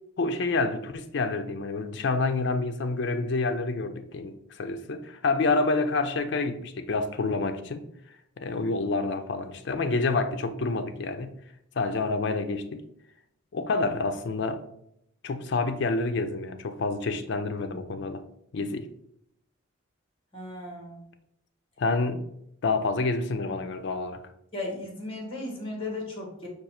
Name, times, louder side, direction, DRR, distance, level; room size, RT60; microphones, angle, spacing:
voice 1, 0.2-7.9 8.4-11.4 11.8-12.8 13.5-14.6 15.2-18.2 18.5-18.9 21.8-22.2 22.6-24.2, left 3 dB, 60° left, 0.4 m, -28 dB
voice 2, 20.3-21.0 24.5-26.5, left 2 dB, 25° left, 1.3 m, -36 dB
5.0 x 2.3 x 4.2 m
head